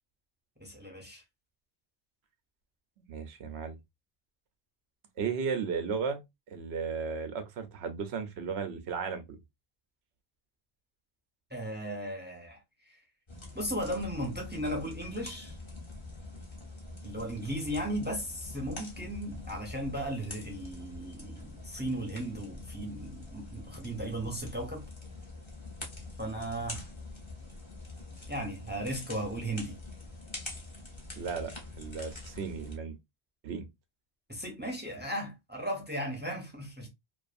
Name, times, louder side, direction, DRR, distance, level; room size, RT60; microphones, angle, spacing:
voice 1, 0.6-1.2 11.5-12.6 12.9-13.0 13.5-15.6 17.0-24.9 26.2-26.9 28.3-29.8 34.3-36.9, right 1 dB, 10° right, 0.6 m, -36 dB
voice 2, 3.1-3.8 5.2-6.2 6.5-9.2 31.2-33.0 33.4-33.7, right 5 dB, 90° right, 0.9 m, -35 dB
sound 1, 13.3-32.8, left 2 dB, 30° left, 0.9 m, -45 dB
2.5 x 2.4 x 2.4 m
omnidirectional pair, 1.1 m